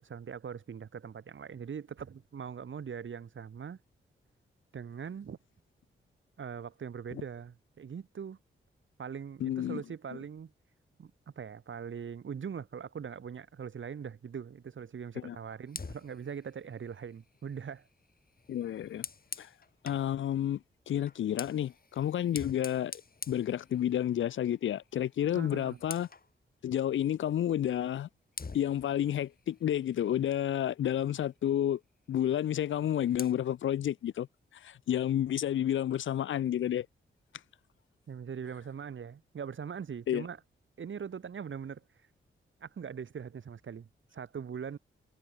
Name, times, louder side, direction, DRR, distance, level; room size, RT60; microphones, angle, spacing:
voice 1, 0.0-3.8 4.7-5.4 6.4-8.4 9.0-10.5 11.0-17.8 25.3-25.8 38.1-40.4 40.8-41.8 42.6-44.8, right 7 dB, 70° right, 5.1 m, -41 dB
voice 2, 9.4-9.8 15.2-15.4 18.5-19.1 19.4-19.5 19.8-23.0 23.3-26.1 26.6-28.1 28.5-31.8 32.1-34.3 34.5-36.9 40.1-40.3, left 11 dB, 70° left, 0.5 m, -30 dB
Fire, 15.7-20.1 21.0-24.3 24.6-24.9 25.2-26.3 27.7-27.8 28.3-30.7 32.6-33.3, left 4 dB, 45° left, 6.1 m, -47 dB
cardioid pair, 55°, 21 cm